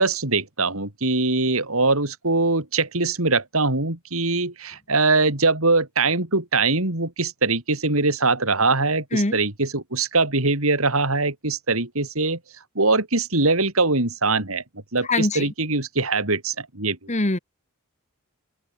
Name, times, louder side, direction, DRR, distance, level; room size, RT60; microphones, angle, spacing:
voice 1, 0.0-12.4 12.8-14.6 14.9-17.1, right 3 dB, 70° right, 4.1 m, -22 dB
voice 2, 15.1-15.5 17.1-17.4, left 2 dB, 30° left, 1.6 m, -22 dB
open air
head